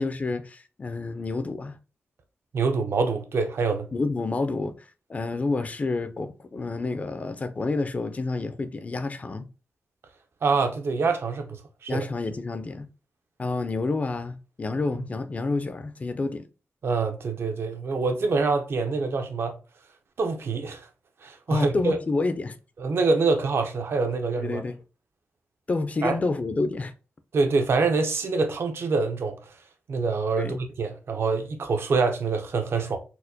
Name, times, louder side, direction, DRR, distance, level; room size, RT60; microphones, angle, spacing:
voice 1, 0.0-1.8 3.9-4.8 5.1-9.5 11.9-12.9 13.4-16.4 21.5-22.6 24.4-24.8 25.7-26.9 30.4-30.6, left 3 dB, 35° left, 0.4 m, -29 dB
voice 2, 2.5-3.9 10.4-12.1 16.8-19.6 20.2-20.9 21.2-22.0 22.8-24.6 26.0-26.1 27.3-29.4 29.9-33.0, right 4 dB, 65° right, 0.6 m, -25 dB
4.2 x 2.2 x 2.6 m
wide cardioid pair, 115°, 4 cm